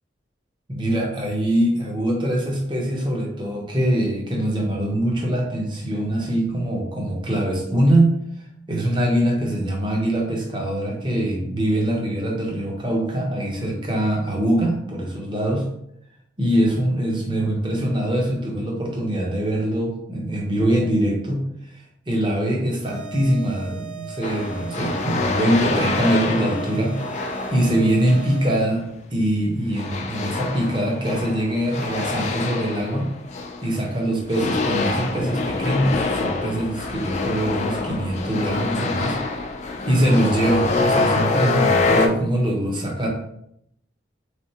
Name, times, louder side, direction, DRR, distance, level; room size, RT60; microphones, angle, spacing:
voice 1, 0.7-8.1 8.7-15.7 16.4-21.4 22.1-28.9 29.1-33.1 33.6-39.2 39.9-43.1, right 1 dB, 25° right, -1 dB, 0.8 m, -23 dB
sound 1, 22.8-28.8, right 7 dB, 60° right, 0.5 m, -38 dB
sound 2, 24.2-28.4 29.8-33.9 34.3-42.1, left 3 dB, 40° left, 0.4 m, -25 dB
3.5 x 3.3 x 2.8 m, 0.75 s
head